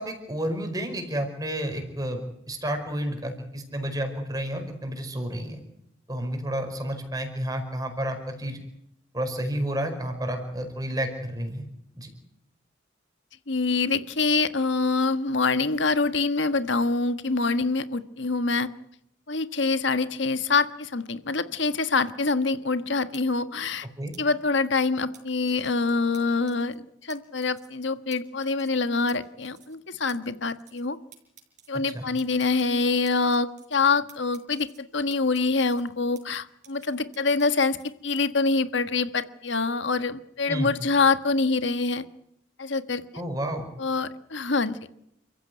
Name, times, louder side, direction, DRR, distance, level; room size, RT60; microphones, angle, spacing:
voice 1, 0.0-5.6 6.1-8.6 9.1-11.7 11.9-12.1 24.0-24.1 31.9-32.1 40.5-40.7 43.1-43.7, right 1 dB, 20° right, 5 dB, 5.1 m, -31 dB
voice 2, 13.5-18.7 19.3-23.9 24.2-31.0 31.7-37.8 38.0-42.0 42.6-43.0 43.8-44.8, left 3 dB, 65° left, 11 dB, 1.5 m, -25 dB
sound 1, 23.1-23.2 24.1-24.2 25.1-25.7 26.1-26.2 26.5-26.8 27.1-27.2 27.4-27.8 28.1-28.2 28.4-28.8 29.1-29.2 29.4-29.8 30.1-30.2 30.4-30.9 31.1-31.7 32.2-33.8 34.1-34.8 35.1-36.4 36.6-37.9, right 10 dB, 40° right, 5.5 m, -52 dB
29.0 x 15.5 x 9.5 m, 0.77 s
head